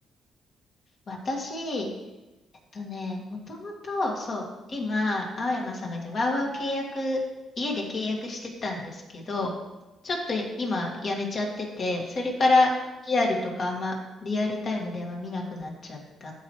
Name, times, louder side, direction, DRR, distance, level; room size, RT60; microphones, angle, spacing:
voice 1, 1.1-1.9 2.7-7.2 7.6-9.5 10.0-12.7 13.0-13.9 14.2-16.3, left 2 dB, 50° left, 0 dB, 1.7 m, -28 dB
12.0 x 4.4 x 3.1 m, 1.1 s
cardioid pair, 90°, 0 cm